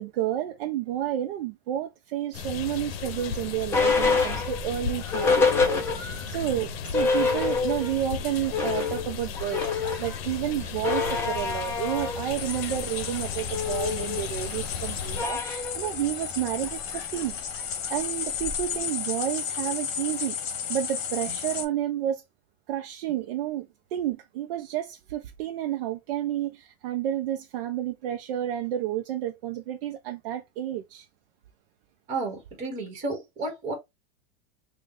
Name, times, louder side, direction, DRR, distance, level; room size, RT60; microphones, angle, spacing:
voice 1, 0.0-17.4 17.9-20.4 20.7-22.2 22.7-31.1, right 11 dB, 60° right, 0.6 m, -31 dB
sound 1, 2.3-15.2, left 7 dB, 75° left, 0.7 m, -36 dB
sound 2, 2.7-6.3 6.7-6.8 6.9-8.0 8.3-18.8, left 4 dB, 10° left, 0.4 m, -28 dB
sound 3, 12.3-21.7, left 8 dB, 55° left, 1.0 m, -33 dB
voice 2, 32.1-33.7, right 3 dB, 25° right, 1.3 m, -32 dB
3.1 x 2.3 x 3.6 m
supercardioid pair, 165°, 30 cm